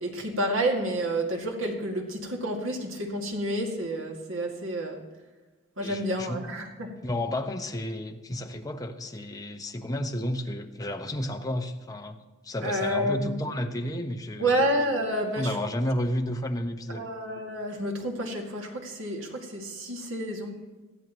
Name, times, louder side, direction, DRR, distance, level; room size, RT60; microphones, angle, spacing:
voice 1, 0.0-5.0 5.8-6.9 12.6-13.3 14.4-15.6 16.9-20.6, right 1 dB, 70° right, 1 dB, 2.2 m, -29 dB
voice 2, 5.8-6.4 7.0-12.2 12.4-14.7 15.4-17.0, left 1 dB, 15° left, 4 dB, 0.8 m, -32 dB
19.0 x 13.5 x 3.0 m, 1.2 s
head